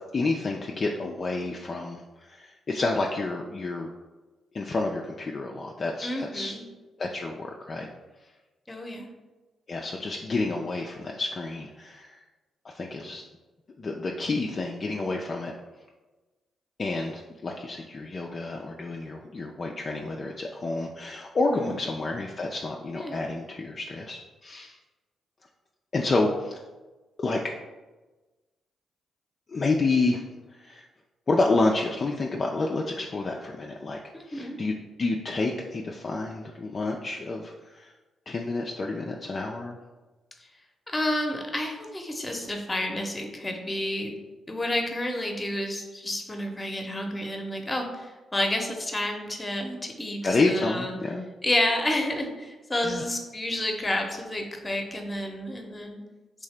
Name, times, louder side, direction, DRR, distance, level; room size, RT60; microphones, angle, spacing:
voice 1, 0.1-3.9 4.5-6.6 7.0-7.9 9.7-12.2 12.6-13.2 13.8-15.5 16.8-24.8 25.9-26.6 27.2-27.4 29.5-30.2 30.5-30.9 31.3-34.0 34.3-34.7 35.0-37.9 38.3-39.8 50.2-51.2 52.8-53.0, left 3 dB, 45° left, 0 dB, 0.3 m, -29 dB
voice 2, 6.0-6.6 8.7-9.1 21.5-21.8 22.9-23.2 34.1-34.6 40.9-44.2 44.5-50.9 51.4-56.0, left 1 dB, 25° left, 2 dB, 0.7 m, -30 dB
3.3 x 2.7 x 3.3 m, 1.2 s
hypercardioid pair, 40°, 0 cm